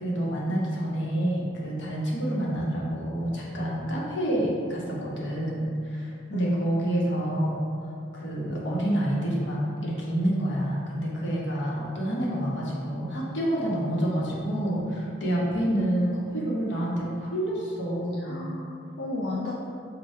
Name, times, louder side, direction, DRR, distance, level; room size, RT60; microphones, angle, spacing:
voice 1, 0.0-7.7 8.1-18.5, right 1 dB, 85° left, -4 dB, 0.9 m, -28 dB
voice 2, 6.3-6.6 15.7-15.9 18.2-19.5, left 2 dB, 60° left, -6 dB, 0.4 m, -33 dB
5.3 x 2.2 x 3.4 m, 2.4 s
head